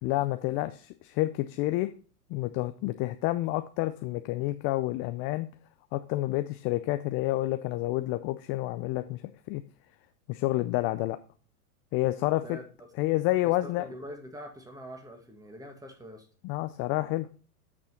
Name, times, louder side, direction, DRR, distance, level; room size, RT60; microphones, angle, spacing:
voice 1, 0.0-1.9 2.3-5.5 5.9-9.2 9.5-9.6 10.3-11.2 11.9-12.6 13.0-13.9 16.4-17.3, left 17 dB, 30° left, 11 dB, 0.4 m, -29 dB
voice 2, 12.4-13.1 13.4-16.3, equal, 10° right, 4 dB, 1.9 m, -45 dB
8.4 x 6.3 x 4.3 m, 0.41 s
hypercardioid pair, 105°, 46 cm